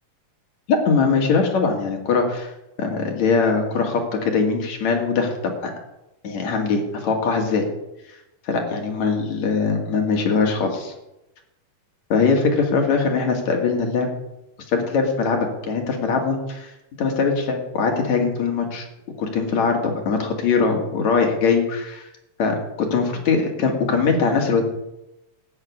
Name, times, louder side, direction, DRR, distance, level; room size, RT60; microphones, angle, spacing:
voice 1, 0.7-2.5 2.8-5.7 6.2-7.6 8.5-10.9 12.1-14.1 14.7-16.7 17.0-18.8 19.2-22.1 22.4-24.6, left 4 dB, 60° left, 2 dB, 3.3 m, -21 dB
14.0 x 6.6 x 9.7 m, 0.92 s
omnidirectional pair, 3.7 m